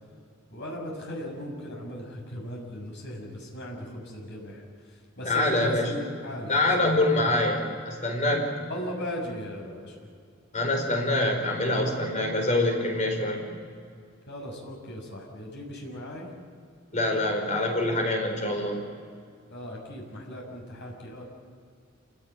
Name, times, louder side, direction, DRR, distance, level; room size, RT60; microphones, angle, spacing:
voice 1, 0.5-4.6 5.2-7.3 8.6-9.9 14.3-16.3 19.5-21.2, equal, 60° left, 0 dB, 6.4 m, -37 dB
voice 2, 5.2-5.9 6.5-8.5 10.5-13.5 16.9-18.8, left 1 dB, 35° left, 2 dB, 4.8 m, -25 dB
27.5 x 18.0 x 9.2 m, 2.3 s
head